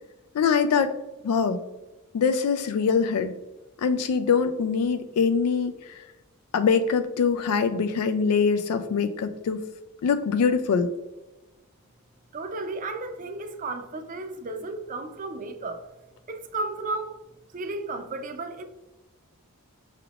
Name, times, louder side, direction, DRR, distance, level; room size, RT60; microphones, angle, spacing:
voice 1, 0.3-1.0 1.2-1.6 2.1-3.3 3.8-6.0 6.5-9.6 10.0-10.9, left 5 dB, 90° left, 9 dB, 0.3 m, -23 dB
voice 2, 12.3-15.9 16.3-17.2 17.5-18.6, right 2 dB, 35° right, 7 dB, 0.5 m, -33 dB
5.7 x 3.5 x 2.3 m, 1.0 s
head